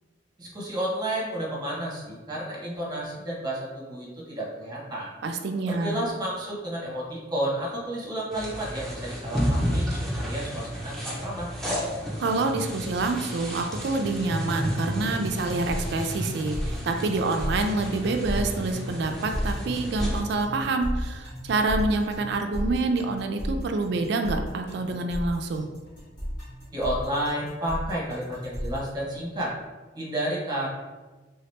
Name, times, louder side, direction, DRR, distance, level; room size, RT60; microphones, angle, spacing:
voice 1, 0.4-5.1 5.7-11.5 26.7-29.5 29.9-30.7, right 1 dB, 20° right, -4 dB, 0.9 m, -31 dB
voice 2, 5.2-6.0 12.2-25.7, right 3 dB, 60° right, 5 dB, 0.3 m, -27 dB
sound 1, 8.3-20.2, equal, ahead, 0.6 m, -32 dB
sound 2, 15.2-28.9, equal, 60° left, 1.5 m, -33 dB
3.4 x 2.9 x 3.2 m, 1.3 s
head